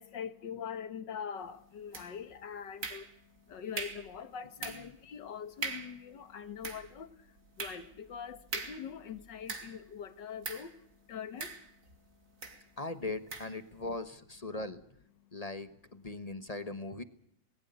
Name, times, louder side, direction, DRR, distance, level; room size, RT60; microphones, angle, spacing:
voice 1, 0.0-12.5 15.2-15.4, left 7 dB, 65° left, 2.1 m, -44 dB
sound 1, 1.9-2.3 2.8-3.4 3.8-4.1 4.6-5.0 5.3-5.4 5.6-6.0 6.4-9.9 10.4-10.8 11.4-12.0 12.4-12.6 13.3-13.6, right 4 dB, 45° right, 2.5 m, -41 dB
voice 2, 4.6-4.9 12.8-14.8 15.3-17.0, left 2 dB, 25° left, 1.0 m, -40 dB
20.0 x 18.5 x 8.1 m
omnidirectional pair, 2.1 m